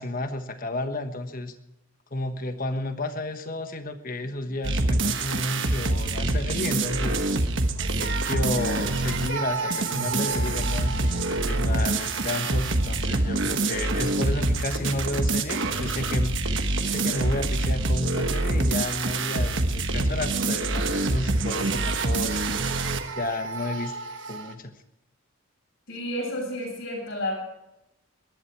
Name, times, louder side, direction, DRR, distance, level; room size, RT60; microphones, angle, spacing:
voice 1, 0.0-1.5 2.1-7.2 8.0-22.4 23.1-23.9 24.3-24.7, left 2 dB, 40° left, 8 dB, 1.3 m, -32 dB
sound 1, 4.6-24.5, right 2 dB, 55° right, 1.4 m, -26 dB
voice 2, 25.9-27.3, left 1 dB, 65° left, -4 dB, 7.6 m, -31 dB
22.5 x 11.0 x 4.7 m, 0.87 s
head